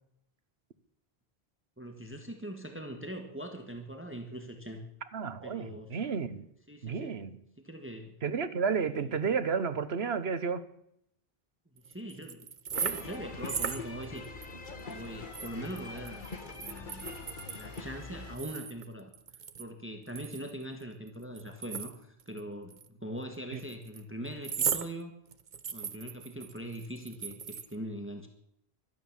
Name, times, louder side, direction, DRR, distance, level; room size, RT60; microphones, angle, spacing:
voice 1, 1.8-4.8 5.4-6.0 6.7-7.2 7.6-8.2 8.9-9.2 11.7-12.5 12.8-14.3 14.9-16.3 16.6-17.3 17.5-19.1 19.6-25.1 25.7-28.3, right 1 dB, 10° right, 5 dB, 1.6 m, -42 dB
voice 2, 5.1-6.5 6.8-7.4 8.2-10.6 23.5-23.6, right 6 dB, 85° right, 12 dB, 1.4 m, -32 dB
sound 1, 11.8-13.2 13.4-14.5 14.8-14.9 15.3-17.8 18.4-19.7 20.1-22.4 22.7-22.9 23.6-24.0 24.4-24.9 25.3-27.8, right 7 dB, 50° right, 0.9 m, -37 dB
sound 2, 12.7-18.4, left 3 dB, 50° left, 1.8 m, -43 dB
15.5 x 13.0 x 7.3 m, 0.75 s
omnidirectional pair, 1.0 m